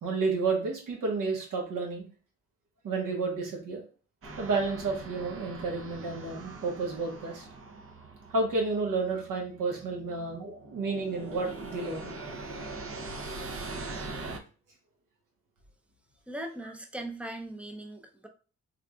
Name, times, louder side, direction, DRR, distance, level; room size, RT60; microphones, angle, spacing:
voice 1, 0.0-2.0 2.8-3.8 4.4-7.4 8.3-12.1, right 3 dB, 70° right, 0 dB, 1.4 m, -31 dB
sound 1, 4.2-14.4, right 3 dB, 40° right, 0.8 m, -42 dB
voice 2, 16.3-18.3, right 1 dB, 5° right, 3 dB, 0.7 m, -39 dB
3.6 x 3.4 x 2.4 m, 0.37 s
cardioid pair, 65°, 33 cm